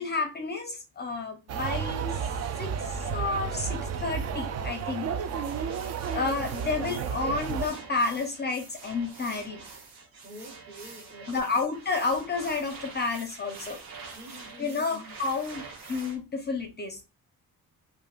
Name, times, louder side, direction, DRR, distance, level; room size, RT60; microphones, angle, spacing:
voice 1, 0.0-2.2 2.6-5.1 6.1-9.6 11.3-13.8 14.6-17.1, left 4 dB, 30° left, 0.5 m, -31 dB
sound 1, 1.5-7.7, right 7 dB, 45° right, 0.4 m, -32 dB
sound 2, 5.4-16.2, right 4 dB, 75° right, 1.0 m, -46 dB
voice 2, 10.2-11.6 14.1-15.1, equal, 30° right, 1.0 m, -47 dB
3.5 x 2.5 x 2.4 m
cardioid pair, 120°, 35 cm